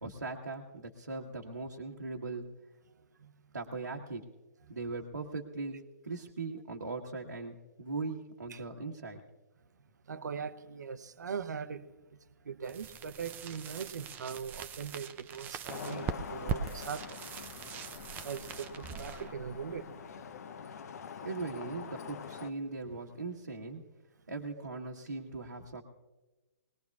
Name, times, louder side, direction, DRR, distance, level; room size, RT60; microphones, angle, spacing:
voice 1, 0.0-2.5 3.5-4.2 4.7-9.2 21.2-23.8 24.3-25.8, right 3 dB, 90° right, 1.3 m, -39 dB
voice 2, 10.1-11.9 12.4-17.5 18.2-19.9, right 6 dB, 75° right, 0.8 m, -41 dB
sound 1, 12.6-20.4, right 7 dB, 20° right, 0.5 m, -42 dB
Traffic noise roadway noise, 15.7-22.5, left 7 dB, 60° left, 0.8 m, -45 dB
23.0 x 19.0 x 2.3 m
figure-of-eight pair, 125°, 10 cm